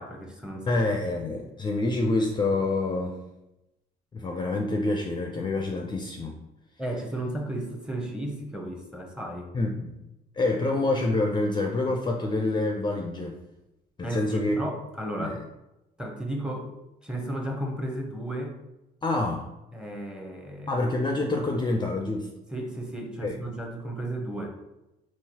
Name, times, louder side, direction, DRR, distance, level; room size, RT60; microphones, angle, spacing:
voice 1, 0.0-1.1 6.8-9.5 14.0-15.4 16.0-16.7 17.0-18.6 19.7-20.8 21.3-21.4 22.5-24.6, right 1 dB, 5° right, 2 dB, 0.7 m, -34 dB
voice 2, 0.7-3.2 4.1-6.4 9.5-10.0 10.3-13.3 14.0-14.6 15.2-15.3 19.0-19.5 20.7-22.3 23.2-23.3, left 2 dB, 25° left, 2 dB, 0.4 m, -27 dB
3.8 x 2.4 x 2.8 m, 0.93 s
supercardioid pair, 75°, 18 cm